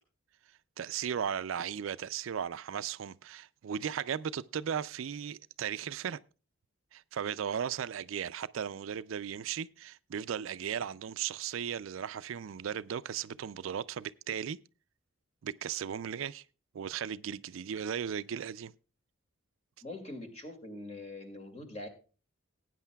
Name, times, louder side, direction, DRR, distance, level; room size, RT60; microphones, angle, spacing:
voice 1, 0.8-6.2 6.9-14.6 15.4-16.4 16.7-18.7, right 8 dB, 75° right, 0.4 m, -36 dB
voice 2, 19.8-21.9, left 2 dB, 35° left, 2.1 m, -43 dB
19.0 x 9.2 x 2.3 m
head